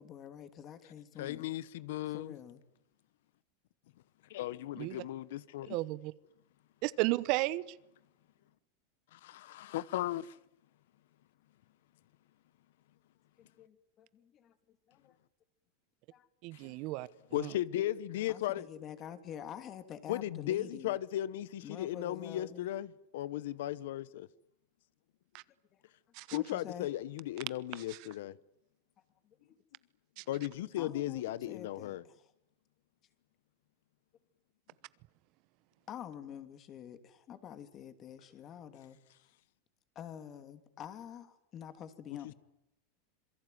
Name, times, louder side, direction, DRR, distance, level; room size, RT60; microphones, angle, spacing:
voice 1, 0.0-1.5 2.1-2.6 13.4-14.5 14.9-15.1 16.1-16.3 16.6-16.8 18.3-21.0 21.6-22.7 25.7-25.8 26.3-26.9 29.2-29.4 30.8-32.0 35.9-39.0 39.9-42.3, left 9 dB, 30° left, 3.0 m, -47 dB
voice 2, 1.2-2.3 4.3-5.8 9.1-10.4 16.5-16.7 17.3-18.7 20.1-24.3 26.3-28.4 30.3-32.0, left 13 dB, 70° left, 1.0 m, -36 dB
voice 3, 5.7-6.1 6.8-7.6 16.4-17.1 17.4-17.5 26.1-26.4 27.9-28.0 30.2-30.3, right 20 dB, 45° right, 1.1 m, -33 dB
27.0 x 22.5 x 9.5 m
supercardioid pair, 145°, 0 cm